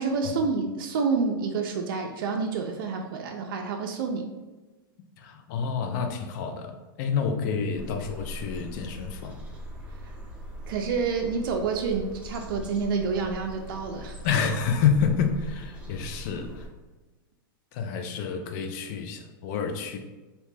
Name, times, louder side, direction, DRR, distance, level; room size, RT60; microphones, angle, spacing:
voice 1, 0.0-4.3 10.0-10.1 10.7-14.2, right 4 dB, 70° right, 3 dB, 0.4 m, -28 dB
voice 2, 5.2-9.4 14.2-16.6 17.7-20.0, left 6 dB, 50° left, 6 dB, 0.4 m, -28 dB
sound 1, 7.7-16.7, right 1 dB, 10° right, 0.7 m, -41 dB
2.8 x 2.1 x 3.2 m, 1.2 s
hypercardioid pair, 120°, 12 cm